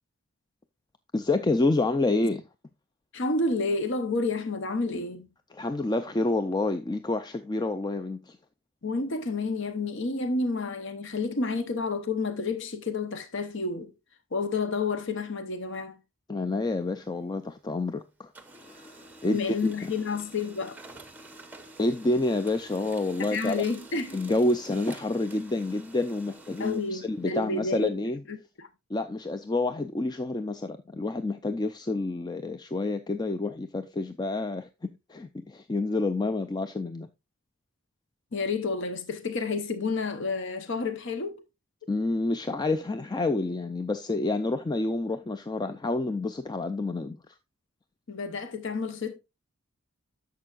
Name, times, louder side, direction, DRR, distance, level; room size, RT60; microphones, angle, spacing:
voice 1, 1.1-2.4 5.5-8.4 16.3-18.3 18.6-19.9 21.8-23.6 24.1-28.2 28.9-37.1 41.9-47.4, left 2 dB, 20° left, 0.3 m, -28 dB
voice 2, 3.1-5.3 8.8-13.9 14.3-16.0 19.2-20.8 23.2-24.2 26.6-27.9 28.3-28.7 38.3-41.4 48.1-49.1, left 3 dB, 55° left, 0.8 m, -30 dB
Printer, 16.7-17.9 18.2-27.8, right 2 dB, 10° right, 0.8 m, -49 dB
11.0 x 6.9 x 2.4 m
head